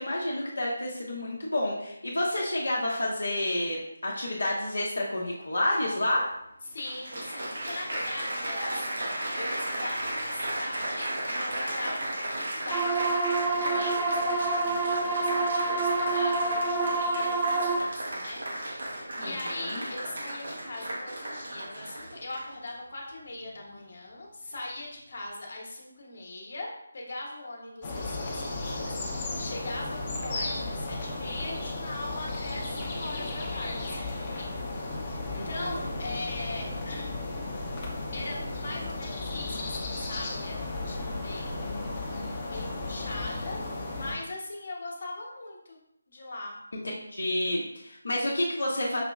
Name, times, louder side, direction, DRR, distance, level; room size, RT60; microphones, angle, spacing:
voice 1, 0.0-6.2 19.2-19.3 19.7-19.8 35.3-35.9 46.8-49.0, left 1 dB, 75° left, -4 dB, 0.9 m, -29 dB
Applause, 6.0-6.1 6.8-22.7 23.4-23.8, right 1 dB, 60° right, 0.9 m, -34 dB
voice 2, 6.6-18.8 19.2-37.2 38.1-45.8 46.1-46.6, left 2 dB, 50° left, -1 dB, 1.2 m, -40 dB
sound 1, 12.7-17.8, right 3 dB, 10° right, 0.4 m, -27 dB
sound 2, 27.8-44.1, left 2 dB, 25° left, 0.8 m, -34 dB
5.9 x 3.0 x 2.3 m, 0.81 s
figure-of-eight pair, 160°, 0 cm